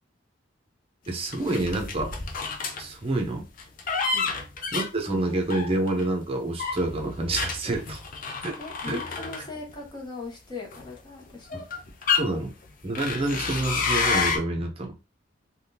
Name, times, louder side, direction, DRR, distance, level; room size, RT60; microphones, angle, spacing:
voice 1, 1.1-2.2 2.8-3.4 4.7-8.0 8.4-8.6 8.9-9.0 11.5-11.6 12.2-12.5 12.8-14.9, right 2 dB, 30° right, 0.7 m, -28 dB
sound 1, 1.3-2.8 3.6-6.0 6.6-9.9 10.7-10.9 11.5-12.2 12.9-14.4, left 5 dB, 45° left, 0.6 m, -29 dB
voice 2, 8.6-11.6, left 3 dB, 25° left, 1.0 m, -39 dB
3.5 x 2.3 x 2.7 m
head